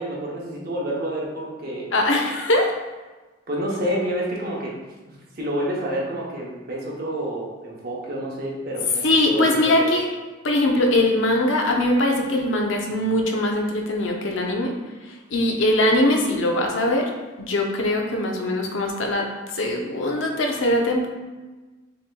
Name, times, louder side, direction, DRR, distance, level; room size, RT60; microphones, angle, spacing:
voice 1, 0.0-1.9 3.5-4.7 5.1-9.9, right 1 dB, 45° right, -3 dB, 0.8 m, -28 dB
voice 2, 1.9-2.7 9.0-10.1 10.4-14.7 15.1-17.1 17.4-19.3 19.5-21.1, left 1 dB, 65° left, 1 dB, 0.6 m, -21 dB
6.4 x 2.8 x 2.2 m, 1.2 s
head